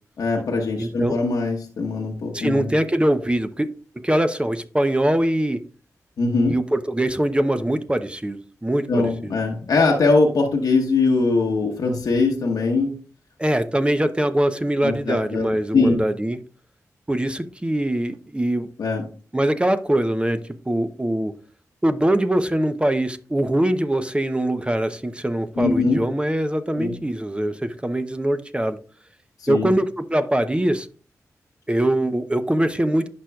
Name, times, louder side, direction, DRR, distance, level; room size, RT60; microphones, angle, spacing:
voice 1, 0.2-2.7 6.2-6.5 8.9-13.0 14.8-15.5 15.7-16.0 18.8-19.0 25.6-26.1 26.8-27.0 29.4-29.7, left 3 dB, 80° left, 0 dB, 1.0 m, -21 dB
voice 2, 0.8-1.2 2.3-3.7 4.0-5.6 6.5-9.3 13.4-16.4 17.1-18.7 19.3-20.4 20.7-21.3 21.8-28.8 29.5-30.9 31.7-33.1, right 1 dB, 15° right, 10 dB, 0.7 m, -22 dB
11.0 x 4.5 x 2.3 m, 0.37 s
cardioid pair, 40°, 6 cm